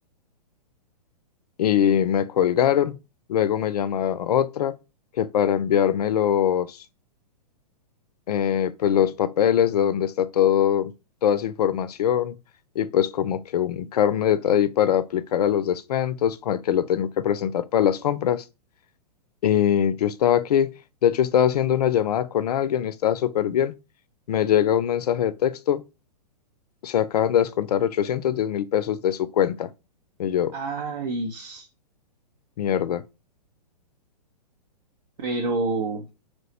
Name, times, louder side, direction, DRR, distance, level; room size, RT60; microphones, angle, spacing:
voice 1, 1.6-2.9 3.3-4.7 5.2-6.8 8.3-10.9 11.2-12.4 12.8-18.4 19.4-20.7 21.0-23.7 24.3-25.8 26.8-29.7 30.2-30.5 32.6-33.0, left 9 dB, 65° left, 0.4 m, -22 dB
voice 2, 30.5-31.7 35.2-36.1, right 3 dB, 70° right, 0.7 m, -28 dB
3.1 x 2.0 x 4.1 m
hypercardioid pair, 120°, 21 cm